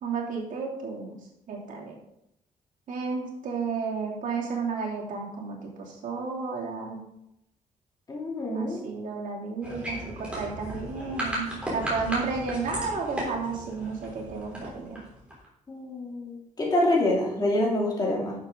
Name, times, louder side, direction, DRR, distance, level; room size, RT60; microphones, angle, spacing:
voice 1, 0.0-1.2 1.5-2.0 2.9-7.0 8.5-15.0, right 4 dB, 75° right, -3 dB, 2.9 m, -32 dB
voice 2, 8.1-8.8 15.7-18.3, left 1 dB, 30° left, -3 dB, 2.9 m, -26 dB
sound 1, 9.6-15.4, right 1 dB, 10° right, 3.7 m, -35 dB
11.0 x 7.0 x 3.9 m, 0.82 s
cardioid pair, 150°, 13 cm